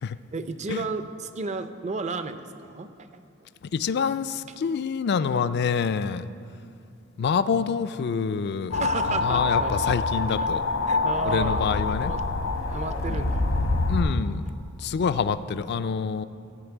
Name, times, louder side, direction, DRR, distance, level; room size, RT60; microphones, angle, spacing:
voice 1, 0.3-3.1 8.7-9.7 10.4-10.5 10.9-11.7 12.0-12.2 12.7-13.4, right 3 dB, 35° right, 10 dB, 0.5 m, -33 dB
voice 2, 3.6-6.3 7.2-8.8 9.1-10.6 11.2-12.1 13.1-13.2 13.9-16.2, left 6 dB, 55° left, 13 dB, 0.4 m, -27 dB
sound 1, 8.7-14.0, left 3 dB, 80° left, 1.0 m, -25 dB
14.5 x 5.2 x 8.1 m, 2.5 s
head